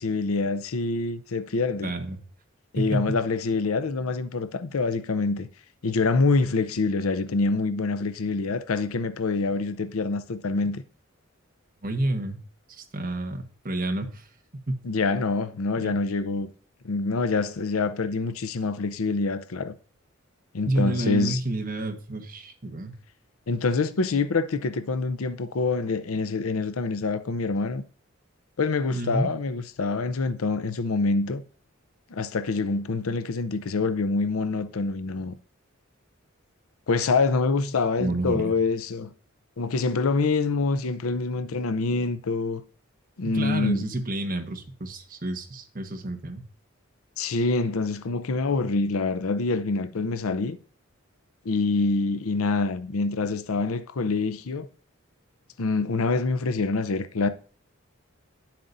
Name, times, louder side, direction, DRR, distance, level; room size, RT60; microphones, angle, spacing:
voice 1, 0.0-1.9 2.7-5.5 5.8-10.8 14.8-16.5 16.8-19.7 20.5-21.4 23.5-27.8 28.6-31.4 32.1-35.3 36.9-39.1 39.6-42.6 43.2-43.8 47.2-50.6 51.4-54.7 55.6-57.3, left 3 dB, 85° left, 0.6 m, -26 dB
voice 2, 1.8-2.2 2.8-3.2 11.8-12.4 12.7-14.3 14.5-14.8 15.8-16.0 20.6-23.0 28.9-29.3 38.0-38.5 43.2-46.4, right 1 dB, 40° right, 1.3 m, -29 dB
10.5 x 7.5 x 2.6 m
head